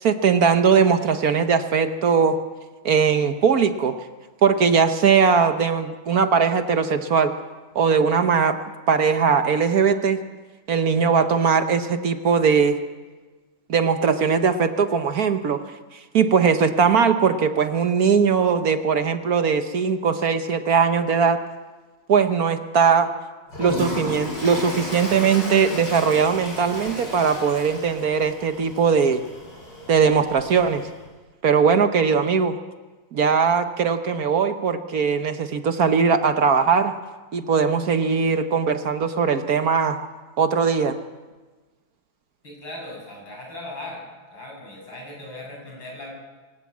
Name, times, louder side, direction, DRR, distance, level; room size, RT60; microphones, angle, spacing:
voice 1, 0.0-2.4 2.8-4.0 4.4-7.3 7.7-8.6 8.9-10.2 10.7-12.8 13.7-15.6 16.1-21.4 22.1-23.1 23.6-29.2 29.9-30.9 31.4-32.5 33.1-36.9 37.3-40.0 40.4-41.0, right 6 dB, 55° right, 9 dB, 1.3 m, -20 dB
Toilet flush, 23.5-31.0, left 1 dB, 65° left, 6.2 m, -34 dB
voice 2, 42.4-44.0 44.3-46.1, left 1 dB, 85° left, -1 dB, 7.6 m, -38 dB
25.0 x 13.5 x 8.5 m, 1.3 s
omnidirectional pair, 2.1 m